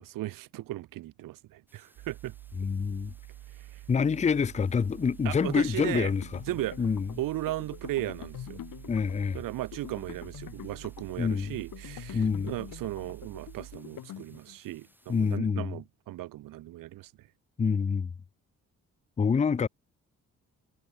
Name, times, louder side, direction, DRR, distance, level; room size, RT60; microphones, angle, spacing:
voice 1, 0.0-2.3 3.5-3.8 5.2-6.1 6.5-6.8 7.2-8.6 9.3-17.1, right 16 dB, 70° right, 0.5 m, -36 dB
sound 1, 1.7-15.4, right 1 dB, 5° right, 7.5 m, -64 dB
sound 2, 2.0-13.8, right 16 dB, 85° right, 2.7 m, -48 dB
voice 2, 2.6-3.1 3.9-6.4 6.8-7.1 8.9-9.4 11.2-11.5 12.1-12.5 15.1-15.7 17.6-18.1 19.2-19.7, left 6 dB, 20° left, 0.5 m, -26 dB
sound 3, 6.2-14.7, left 12 dB, 70° left, 1.1 m, -46 dB
supercardioid pair, 55°, 35 cm